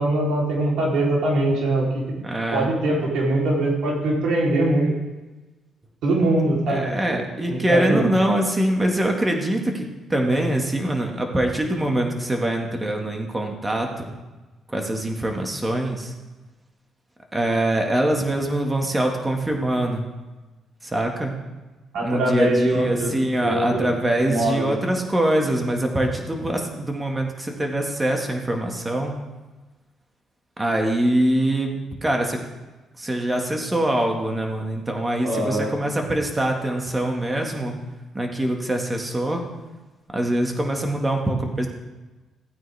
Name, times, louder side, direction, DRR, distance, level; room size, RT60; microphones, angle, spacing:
voice 1, 0.0-2.0 2.5-4.9 6.0-7.2 7.5-8.1 21.9-23.1 23.4-23.9 24.2-24.7 35.2-35.7, right 1 dB, 80° right, -3 dB, 3.7 m, -22 dB
voice 2, 2.2-2.7 6.7-14.0 14.7-16.1 17.3-20.1 20.8-21.3 22.0-29.2 30.6-32.4 33.0-37.7 38.1-39.4 40.1-41.7, right 1 dB, 15° right, 2 dB, 1.9 m, -23 dB
15.5 x 9.1 x 3.6 m, 1.2 s
cardioid pair, 90°, 0 cm